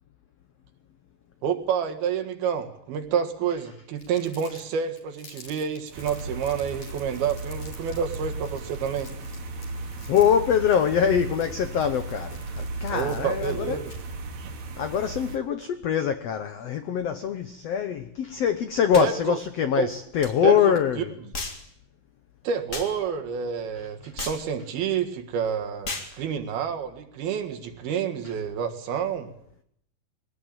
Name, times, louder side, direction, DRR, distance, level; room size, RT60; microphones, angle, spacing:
voice 1, 1.4-9.1 12.9-13.9 14.4-14.5 19.0-19.4 19.8-19.9 20.4-21.0 22.5-29.3, right 7 dB, 85° right, 3.7 m, -29 dB
Crumpling crinkling, 4.0-14.2, left 4 dB, 50° left, 4.7 m, -50 dB
sound 1, 5.9-15.4, right 3 dB, 60° right, 2.8 m, -36 dB
voice 2, 10.1-13.8 14.8-21.1 24.0-24.1, left 8 dB, 80° left, 1.4 m, -24 dB
sound 2, 18.9-19.1 20.2-20.3 21.3-21.6 22.7-22.9 24.2-24.4 25.8-26.1, left 2 dB, 30° left, 1.8 m, -34 dB
22.0 x 17.5 x 8.9 m
omnidirectional pair, 4.3 m